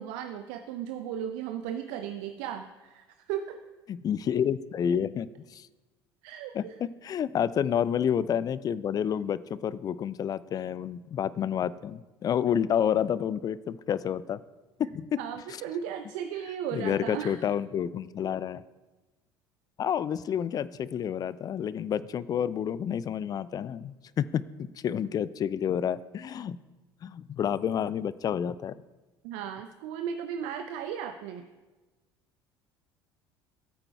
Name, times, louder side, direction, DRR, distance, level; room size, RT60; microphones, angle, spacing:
voice 1, 0.0-3.6 6.2-6.8 15.2-17.5 29.2-31.5, right 9 dB, 60° right, 8 dB, 0.5 m, -36 dB
voice 2, 3.9-5.7 6.5-14.4 14.8-15.1 16.7-18.6 19.8-26.6 27.0-28.8, left 8 dB, 30° left, 18 dB, 0.4 m, -29 dB
17.5 x 8.8 x 2.3 m, 1.2 s
figure-of-eight pair, 65°, 13 cm